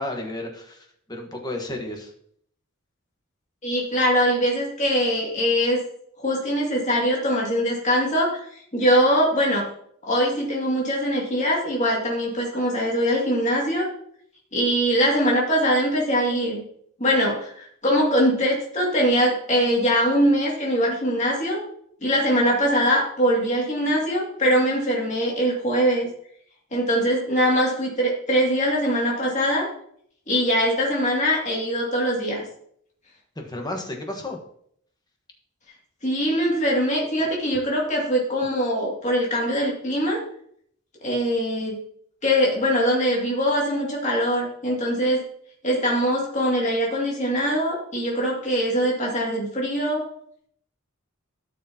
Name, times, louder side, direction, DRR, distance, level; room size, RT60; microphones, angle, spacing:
voice 1, 0.0-2.1 33.3-34.4, left 1 dB, 20° left, 3 dB, 1.3 m, -32 dB
voice 2, 3.6-5.8 6.2-9.6 10.0-13.9 14.5-16.6 17.0-21.6 22.0-26.1 26.7-29.7 30.3-32.4 36.0-40.2 41.0-41.8 42.2-45.2 45.6-50.0, equal, 35° left, -3 dB, 2.4 m, -22 dB
12.5 x 6.6 x 2.9 m, 0.66 s
head